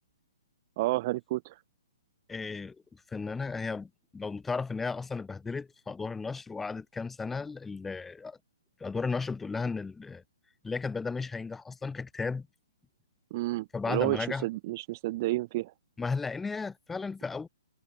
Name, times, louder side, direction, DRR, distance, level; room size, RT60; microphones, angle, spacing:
voice 1, 0.8-1.6 13.3-15.7, right 18 dB, 35° right, 0.6 m, -30 dB
voice 2, 2.3-8.4 8.8-10.2 10.6-12.5 13.7-14.5 16.0-17.5, left 4 dB, 5° left, 1.3 m, -34 dB
hypercardioid pair, 150°, 2 cm